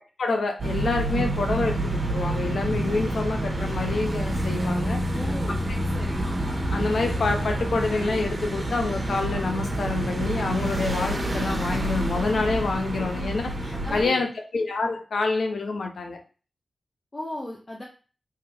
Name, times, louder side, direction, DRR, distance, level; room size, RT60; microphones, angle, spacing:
voice 1, 0.2-5.0 6.2-16.2, left 3 dB, 75° left, 4 dB, 0.7 m, -27 dB
sound 1, 0.6-14.1, right 1 dB, 50° right, 1.4 m, -28 dB
voice 2, 5.1-5.6 5.9-6.2 13.8-14.2 17.1-17.8, left 1 dB, 30° left, -2 dB, 0.7 m, -35 dB
3.5 x 2.8 x 3.4 m, 0.37 s
wide cardioid pair, 105°, 0 cm